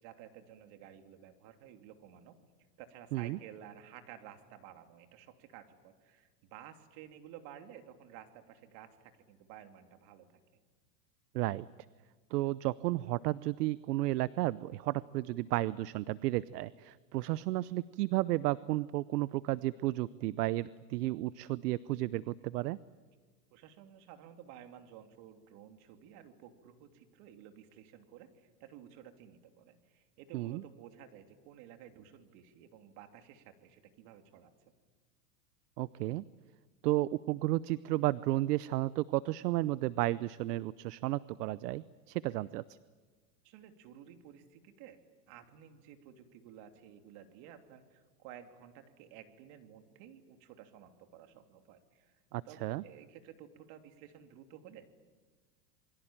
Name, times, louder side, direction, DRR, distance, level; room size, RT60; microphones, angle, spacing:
voice 1, 0.0-2.4 2.8-10.4 23.5-34.5 42.3-42.4 43.4-45.0 45.3-52.2 52.4-54.9, right 10 dB, 55° right, 6 dB, 3.1 m, -54 dB
voice 2, 11.3-11.7 12.3-22.8 30.3-30.6 35.8-36.2 36.8-42.6 52.3-52.8, right 17 dB, 75° right, 18 dB, 0.8 m, -33 dB
27.5 x 23.0 x 8.9 m, 1.4 s
supercardioid pair, 125°, 47 cm